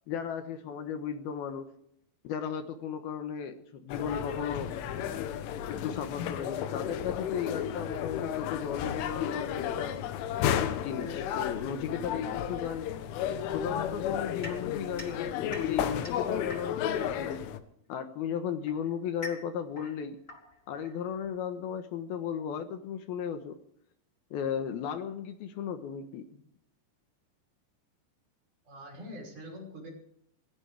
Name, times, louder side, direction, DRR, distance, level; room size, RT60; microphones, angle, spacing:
voice 1, 0.1-1.7 2.2-4.7 5.6-10.0 10.7-12.9 13.2-17.4 17.9-20.2 20.7-23.6 24.3-26.4, left 8 dB, 70° left, 8 dB, 2.6 m, -35 dB
sound 1, 3.9-17.6, left 9 dB, 90° left, 3.6 m, -33 dB
sound 2, 14.4-17.0 18.0-21.4, left 2 dB, 20° left, 2.5 m, -46 dB
voice 2, 28.7-29.9, equal, 40° right, -1 dB, 7.1 m, -44 dB
18.5 x 18.0 x 3.5 m, 0.71 s
omnidirectional pair, 5.4 m